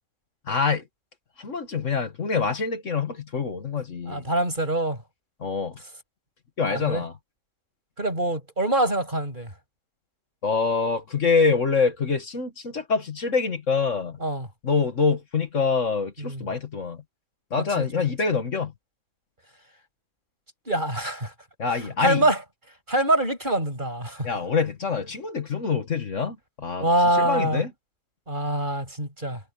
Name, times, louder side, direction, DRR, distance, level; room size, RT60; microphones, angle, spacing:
voice 1, 0.5-0.8 1.4-4.2 5.4-5.8 6.6-7.1 10.4-14.2 14.6-17.0 17.5-18.7 21.6-22.2 24.2-27.7, left 5 dB, 60° left, 2.0 m, -25 dB
voice 2, 4.0-5.0 6.7-7.0 8.0-9.5 14.2-14.5 16.2-16.5 17.8-17.9 20.7-21.3 21.8-22.4 22.9-24.3 26.8-27.6 28.3-29.4, right 1 dB, 35° right, 7.4 m, -24 dB
omnidirectional pair, 1.5 m